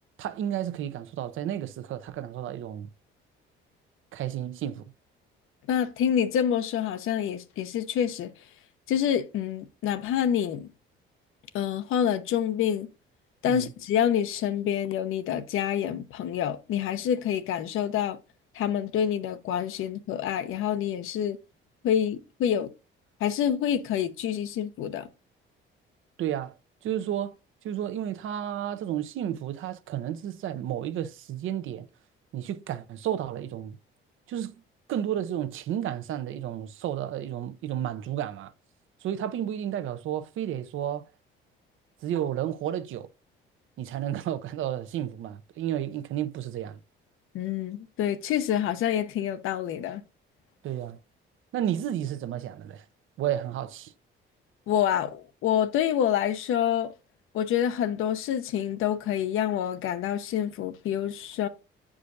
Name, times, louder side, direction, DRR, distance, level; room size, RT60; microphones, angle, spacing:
voice 1, 0.2-2.9 4.1-4.9 13.5-13.7 26.2-26.6 26.8-27.4 27.6-31.9 32.3-33.8 34.3-34.6 34.9-38.5 39.0-41.1 42.0-43.1 43.8-46.8 50.6-51.0 51.5-52.8 53.2-53.9, right 11 dB, 70° right, 0.7 m, -32 dB
voice 2, 5.7-8.3 8.9-10.7 11.5-12.9 13.4-18.2 18.5-21.4 21.8-22.7 23.2-25.1 47.3-50.0 54.7-56.9 57.3-61.5, left 9 dB, 75° left, 0.7 m, -27 dB
8.3 x 5.0 x 2.6 m
cardioid pair, 85°, 21 cm